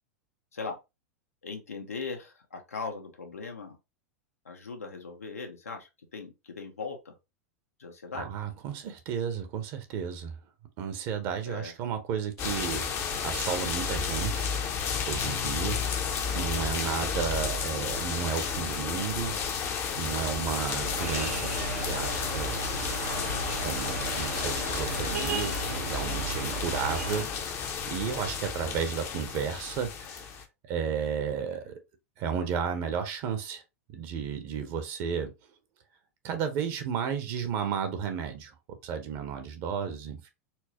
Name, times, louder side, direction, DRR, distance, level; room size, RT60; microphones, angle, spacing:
voice 1, 1.4-3.8 4.4-7.1 7.8-8.3 11.5-11.7 16.4-16.7, left 4 dB, 85° left, 1.0 m, -39 dB
voice 2, 8.1-10.3 10.8-12.9 13.2-14.5 15.1-15.8 16.3-19.4 20.0-22.5 23.6-30.2 30.7-31.7 32.2-33.6 33.9-35.3 36.2-38.5 38.8-40.3, right 7 dB, 50° right, 0.8 m, -33 dB
sound 1, 12.4-30.4, left 6 dB, 35° left, 0.7 m, -32 dB
sound 2, 20.8-27.2, right 4 dB, 80° right, 0.9 m, -35 dB
4.4 x 2.0 x 2.9 m
hypercardioid pair, 95°, 8 cm